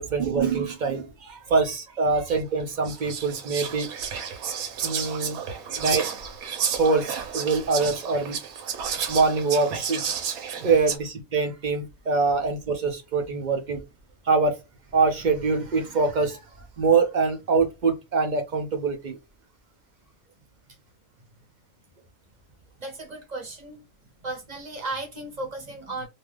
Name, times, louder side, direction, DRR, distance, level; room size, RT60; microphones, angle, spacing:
voice 1, 0.0-3.9 4.8-5.4 5.7-6.0 6.7-8.4 9.1-10.0 10.6-13.8 14.3-14.6 14.9-16.4 16.8-19.2, right 4 dB, 70° right, 0.4 m, -24 dB
Whispering, 2.3-2.4 2.8-11.0, right 7 dB, 85° right, 1.2 m, -31 dB
voice 2, 22.8-23.9 24.2-26.1, right 2 dB, 40° right, 0.7 m, -36 dB
2.7 x 2.3 x 3.1 m
omnidirectional pair, 1.5 m